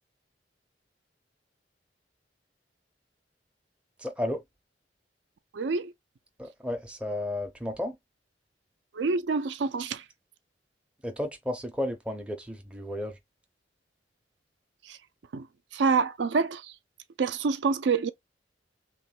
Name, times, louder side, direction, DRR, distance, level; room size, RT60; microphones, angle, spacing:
voice 1, 4.0-4.4 6.4-8.0 11.0-13.1, left 1 dB, 5° right, 0.5 m, -33 dB
voice 2, 5.5-5.9 8.9-10.0 14.9-15.0 15.3-15.5 15.7-16.7 17.2-18.1, right 5 dB, 70° right, 0.4 m, -27 dB
3.1 x 2.2 x 4.2 m
head